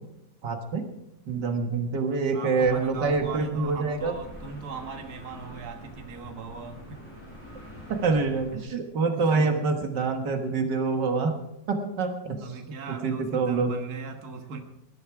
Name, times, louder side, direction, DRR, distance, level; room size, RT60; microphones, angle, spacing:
voice 1, 0.4-0.8 1.3-4.1 7.9-11.3 11.7-12.6 12.9-13.7, right 4 dB, 85° right, 5 dB, 2.1 m, -26 dB
voice 2, 2.3-7.0 9.1-9.6 12.3-14.6, right 5 dB, 60° right, 5 dB, 2.0 m, -39 dB
sound 1, 2.6-8.6, left 1 dB, 15° left, 7.2 m, -45 dB
20.0 x 11.5 x 4.8 m, 0.84 s
omnidirectional pair, 1.8 m